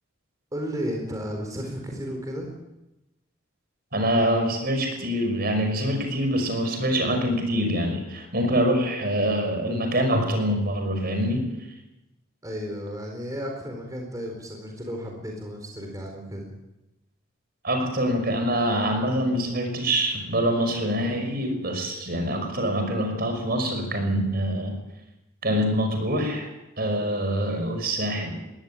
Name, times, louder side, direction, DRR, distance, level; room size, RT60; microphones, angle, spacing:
voice 1, 0.5-2.5 12.4-16.5, equal, 20° right, 1 dB, 4.2 m, -33 dB
voice 2, 3.9-11.5 17.6-24.8 25.4-26.5 26.8-28.4, equal, 50° right, 5 dB, 5.9 m, -25 dB
21.5 x 17.5 x 9.0 m, 0.96 s
head